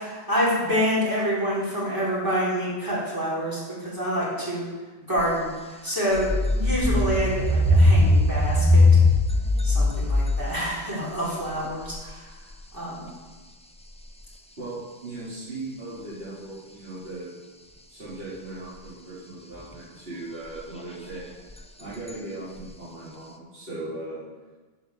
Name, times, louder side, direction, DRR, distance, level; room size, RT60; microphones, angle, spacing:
voice 1, 0.0-4.7 5.1-8.9 9.6-12.3 12.7-13.1, equal, 15° right, -7 dB, 4.1 m, -27 dB
sound 1, 5.2-5.3 5.9-10.6 11.6-12.1 14.2-14.3 21.5-21.6 22.1-22.2 22.6-22.7, left 2 dB, 5° left, 0.5 m, -20 dB
voice 2, 14.6-17.3 17.9-21.2 21.8-24.2, right 2 dB, 55° right, -12 dB, 3.7 m, -38 dB
8.5 x 8.1 x 7.2 m, 1.3 s
omnidirectional pair, 1.2 m